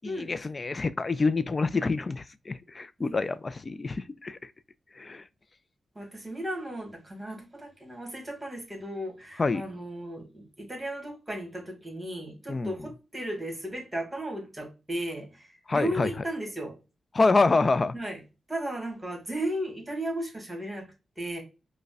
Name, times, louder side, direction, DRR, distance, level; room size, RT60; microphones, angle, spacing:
voice 1, 0.0-4.5 5.0-5.2 9.4-9.6 12.5-12.8 15.7-16.1 17.1-18.0, left 3 dB, 35° left, 0.3 m, -26 dB
voice 2, 5.9-15.5 15.7-16.7 17.9-18.2 18.5-20.9 21.2-21.4, right 1 dB, 20° right, 1.6 m, -35 dB
4.9 x 2.1 x 2.3 m
cardioid pair, 75°, 0 cm